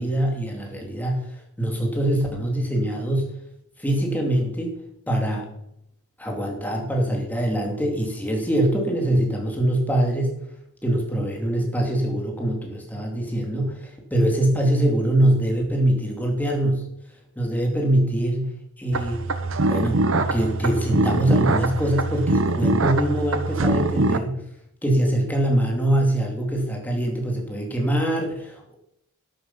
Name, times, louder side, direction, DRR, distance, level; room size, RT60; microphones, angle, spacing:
voice 1, 0.0-3.4 3.8-4.8 5.1-5.5 6.2-10.4 10.8-16.9 17.4-19.2 19.7-24.4 24.8-28.8, right 1 dB, 10° left, 0 dB, 2.6 m, -23 dB
sound 1, 18.9-24.2, right 2 dB, 60° right, 0.9 m, -23 dB
12.5 x 8.8 x 5.7 m, 0.76 s
head